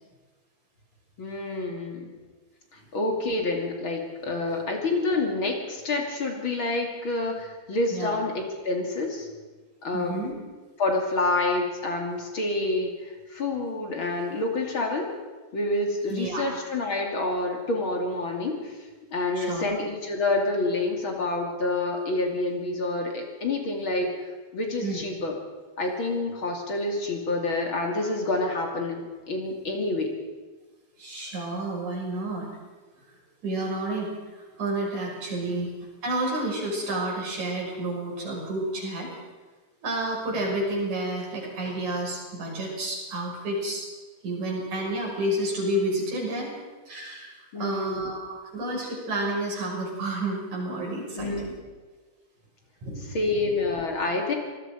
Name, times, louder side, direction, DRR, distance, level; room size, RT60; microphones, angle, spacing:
voice 1, 1.2-2.1 2.7-9.3 9.8-10.2 10.8-15.1 15.5-18.8 19.1-25.4 25.8-30.1 35.4-35.7 47.5-48.0 51.1-51.5 53.1-54.3, left 2 dB, 45° left, 1 dB, 3.4 m, -28 dB
voice 2, 9.9-10.3 16.1-16.4 19.4-19.7 24.8-25.0 31.0-32.5 33.4-35.7 36.0-39.2 39.8-43.9 44.2-46.5 46.9-51.5 52.8-53.2, right 1 dB, 80° right, -2 dB, 7.6 m, -30 dB
26.5 x 19.5 x 5.3 m, 1.3 s
omnidirectional pair, 3.3 m